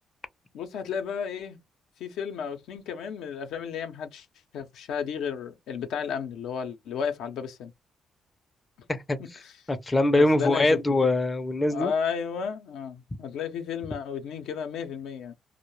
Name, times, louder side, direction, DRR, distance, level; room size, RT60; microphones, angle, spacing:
voice 1, 0.5-1.6 2.0-4.3 4.5-7.7 9.4-9.5 10.1-10.8 11.7-15.3, left 7 dB, 85° left, 0.5 m, -33 dB
voice 2, 9.7-11.9, left 2 dB, 20° left, 0.4 m, -23 dB
2.2 x 2.1 x 3.0 m
cardioid pair, 90°, 0 cm